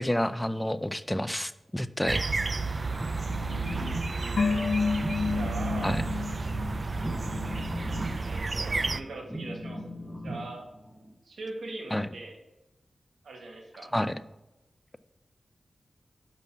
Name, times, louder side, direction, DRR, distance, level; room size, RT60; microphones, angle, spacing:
voice 1, 0.0-2.2 5.8-6.0 11.9-12.1 13.9-14.1, left 1 dB, 10° left, 13 dB, 0.5 m, -29 dB
sound 1, 2.1-9.0, right 3 dB, 45° right, 0.4 m, -31 dB
Telephone, 2.8-4.0 4.3-4.6 5.0-11.1, equal, 5° right, 1.1 m, -38 dB
voice 2, 4.1-4.5 5.3-6.0 8.2-9.8 10.2-10.7 11.2-12.4 13.2-13.9, right 2 dB, 90° right, 1 dB, 1.6 m, -41 dB
sound 2, 4.4-7.7 7.9-8.0, left 4 dB, 75° left, 0.4 m, -30 dB
5.7 x 5.3 x 5.9 m, 0.97 s
cardioid pair, 50°, 0 cm